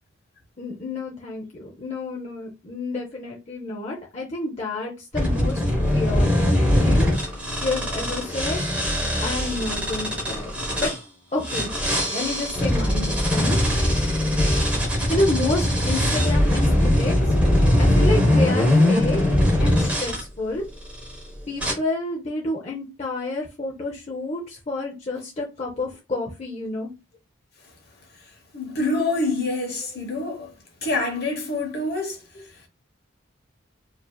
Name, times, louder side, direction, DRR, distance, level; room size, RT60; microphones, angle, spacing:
voice 1, 0.6-5.6 5.9-7.3 7.6-8.6 9.2-10.9 11.3-11.7 12.1-13.6 15.1-17.3 17.8-19.2 19.6-20.6 21.5-26.9, left 2 dB, 30° left, 0.7 m, -29 dB
sound 1, 5.1-11.0 11.4-20.2 20.9-21.2 21.6-21.7, left 1 dB, 5° right, 1.1 m, -21 dB
voice 2, 28.5-30.5 30.8-32.2, left 2 dB, 50° left, 1.1 m, -26 dB
4.6 x 2.8 x 2.3 m
head